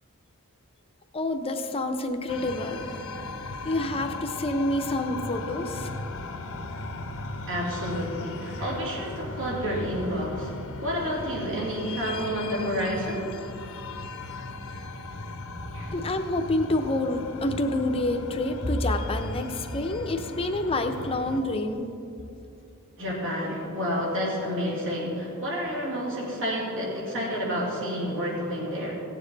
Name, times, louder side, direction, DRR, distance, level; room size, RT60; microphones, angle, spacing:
voice 1, 1.1-2.9 3.6-5.9 15.9-21.9, left 1 dB, 25° left, 5 dB, 0.7 m, -28 dB
sound 1, 2.3-21.4, left 2 dB, 65° left, 0.8 m, -37 dB
voice 2, 7.5-13.3 15.7-15.9 23.0-29.0, equal, 65° right, -4 dB, 2.7 m, -30 dB
17.0 x 7.3 x 4.0 m, 2.8 s
head